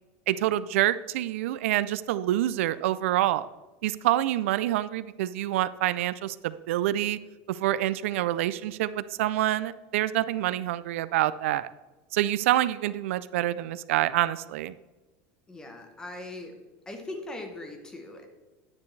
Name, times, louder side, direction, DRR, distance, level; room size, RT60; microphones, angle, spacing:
voice 1, 0.3-3.5 3.8-7.2 7.5-11.7 12.1-14.7, right 14 dB, 80° right, 16 dB, 0.4 m, -27 dB
voice 2, 15.5-16.5 16.9-18.3, left 2 dB, 10° left, 5 dB, 1.0 m, -40 dB
9.6 x 9.4 x 3.2 m, 1.2 s
supercardioid pair, 175°, 7 cm